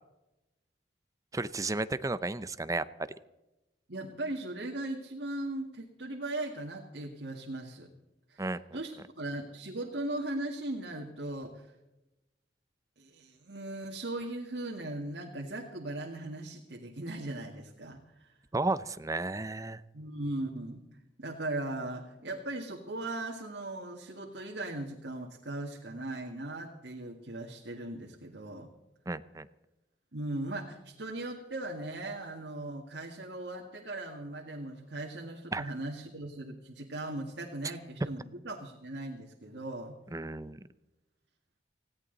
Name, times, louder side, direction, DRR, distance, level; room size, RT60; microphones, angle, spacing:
voice 1, 1.3-2.8 8.4-8.6 18.5-19.8 29.1-29.5 35.5-35.7 40.1-40.6, right 2 dB, 20° right, 14 dB, 0.6 m, -33 dB
voice 2, 3.9-7.9 8.3-11.7 13.0-18.3 19.9-20.8 21.2-28.7 30.1-40.0, right 2 dB, 80° right, -1 dB, 2.1 m, -38 dB
19.5 x 16.5 x 4.0 m, 0.98 s
head